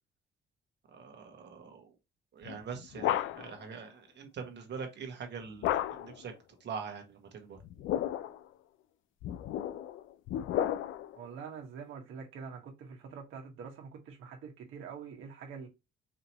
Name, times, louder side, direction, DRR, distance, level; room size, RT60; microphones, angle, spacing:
voice 1, 0.9-1.9 2.3-6.3 6.6-7.6, right 6 dB, 60° right, 1.4 m, -43 dB
sound 1, 2.4-3.6 5.6-6.2 7.6-8.4 9.2-11.2, left 11 dB, 80° left, 0.4 m, -33 dB
voice 2, 11.2-15.7, right 6 dB, 85° right, 1.6 m, -45 dB
5.0 x 2.8 x 2.9 m
cardioid pair, 90°, 20 cm